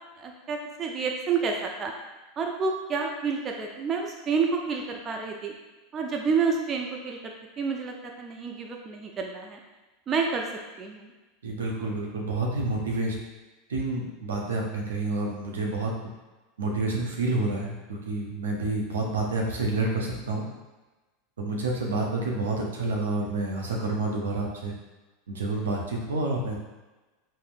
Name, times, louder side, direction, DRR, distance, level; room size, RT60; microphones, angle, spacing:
voice 1, 0.2-1.9 2.4-5.5 5.9-9.6 10.1-10.5 10.8-11.1, right 5 dB, 35° right, 1 dB, 0.4 m, -29 dB
voice 2, 11.4-13.1 13.7-15.9 16.6-20.4 21.4-24.7 25.3-26.6, right 2 dB, 85° right, -1 dB, 0.5 m, -29 dB
3.6 x 2.0 x 2.5 m, 1.1 s
hypercardioid pair, 90°, 0 cm